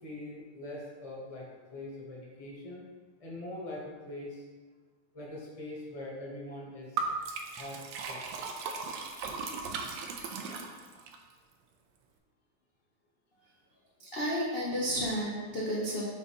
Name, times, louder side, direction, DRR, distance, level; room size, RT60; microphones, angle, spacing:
voice 1, 0.0-2.8 3.2-4.4 5.1-7.1 7.5-7.8 8.1-8.5, left 1 dB, 20° left, -4 dB, 1.0 m, -43 dB
Liquid, 7.0-11.2, right 4 dB, 70° right, 1.2 m, -37 dB
voice 2, 14.0-16.0, equal, 80° left, -5 dB, 0.5 m, -32 dB
5.0 x 3.9 x 5.2 m, 1.4 s
omnidirectional pair, 2.4 m